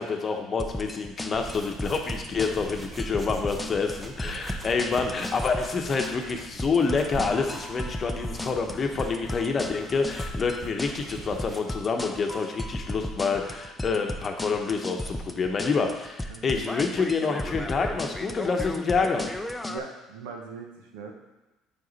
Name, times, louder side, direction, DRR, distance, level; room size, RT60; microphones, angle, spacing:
voice 1, 0.0-19.3, left 4 dB, 40° left, 4 dB, 0.9 m, -27 dB
sound 1, 0.6-19.8, left 1 dB, 10° left, 0.5 m, -35 dB
sound 2, 1.3-11.6, right 2 dB, 20° right, 0.8 m, -42 dB
voice 2, 16.3-16.7 19.7-21.1, right 5 dB, 85° right, 1 dB, 0.9 m, -40 dB
5.2 x 4.9 x 4.0 m, 1.1 s
supercardioid pair, 75°, 0 cm